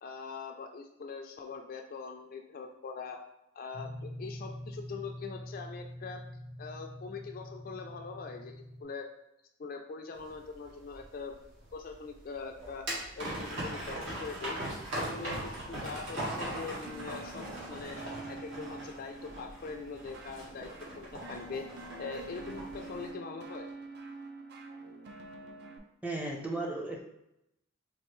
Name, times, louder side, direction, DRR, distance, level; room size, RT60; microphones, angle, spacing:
voice 1, 0.0-3.2 3.6-6.2 6.6-9.1 9.6-11.3 11.7-12.9 13.2-14.6 14.9-18.0 18.3-20.7 21.0-21.7 22.0-23.7, left 4 dB, 45° left, 4 dB, 0.3 m, -42 dB
sound 1, 3.7-8.8, equal, 90° right, 1.0 m, -45 dB
sound 2, 10.2-23.1, right 1 dB, 70° right, 1.4 m, -40 dB
sound 3, 16.9-25.8, right 3 dB, 55° right, 0.4 m, -47 dB
voice 2, 26.0-27.0, right 2 dB, 5° right, -1 dB, 0.6 m, -35 dB
4.5 x 2.5 x 3.0 m, 0.84 s
head